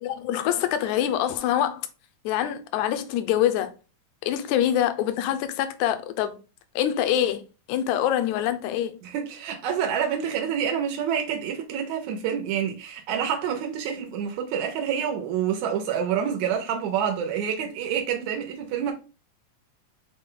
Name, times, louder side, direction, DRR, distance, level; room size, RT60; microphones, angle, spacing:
voice 1, 0.0-1.9 2.3-3.7 4.2-6.4 6.8-7.4 7.7-9.0, left 11 dB, 80° left, 1.9 m, -25 dB
voice 2, 9.0-18.9, right 8 dB, 80° right, 2.0 m, -27 dB
5.7 x 2.2 x 3.7 m
omnidirectional pair, 3.4 m